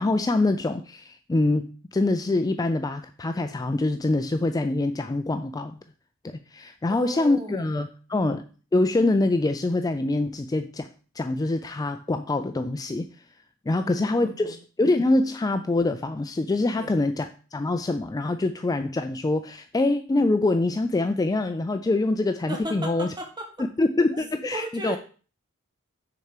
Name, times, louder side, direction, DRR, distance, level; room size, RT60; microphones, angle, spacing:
voice 1, 0.0-5.8 6.2-8.4 8.7-10.9 11.1-13.1 13.7-23.1 23.6-25.0, left 2 dB, 15° left, 8 dB, 0.3 m, -25 dB
voice 2, 6.9-7.7 8.1-8.3 13.8-14.6 16.8-17.0 22.5-23.5 24.1-25.0, right 1 dB, 20° right, 3 dB, 1.7 m, -36 dB
6.7 x 4.3 x 6.6 m, 0.38 s
head